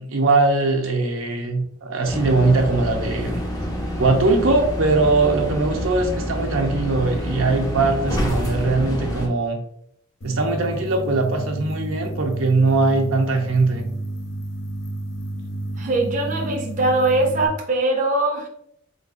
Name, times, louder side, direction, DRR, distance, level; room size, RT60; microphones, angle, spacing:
voice 1, 0.0-3.4 4.0-9.6 10.2-13.8, right 3 dB, 75° right, 2 dB, 0.7 m, -20 dB
sound 1, 2.1-9.3, equal, 15° left, 0.7 m, -27 dB
sound 2, 10.2-17.5, right 1 dB, 65° left, 0.9 m, -31 dB
voice 2, 15.8-18.5, right 2 dB, 40° right, 1 dB, 0.6 m, -21 dB
4.0 x 3.8 x 2.5 m, 0.69 s
head